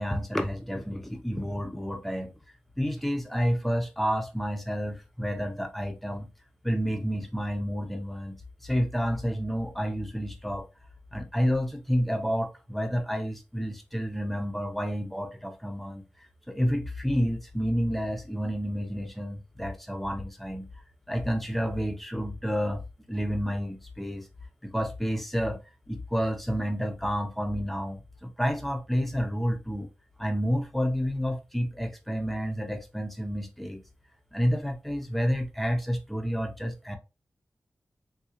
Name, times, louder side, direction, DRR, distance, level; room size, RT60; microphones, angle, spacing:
voice 1, 0.0-2.3 2.8-6.3 6.6-10.6 11.1-16.0 16.5-20.7 21.1-22.8 23.1-24.3 24.6-25.6 25.9-29.9 30.2-33.8 34.3-37.0, equal, 5° left, 0.6 m, -30 dB
3.7 x 2.3 x 2.8 m
wide cardioid pair, 95°, 5 cm